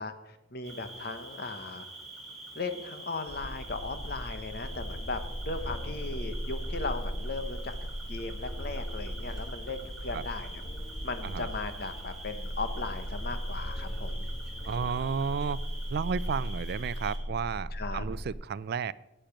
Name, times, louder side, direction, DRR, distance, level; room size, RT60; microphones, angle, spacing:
voice 1, 0.0-1.8 2.5-10.6 11.0-14.3 17.7-18.0, left 3 dB, 55° left, 9 dB, 1.1 m, -37 dB
Cricket, 0.6-17.2, right 2 dB, ahead, 2.8 m, -46 dB
sound 1, 3.3-18.3, equal, 70° left, 1.9 m, -37 dB
voice 2, 14.7-15.6 15.9-18.9, right 6 dB, 60° right, 19 dB, 0.4 m, -32 dB
10.0 x 9.0 x 5.9 m, 0.92 s
head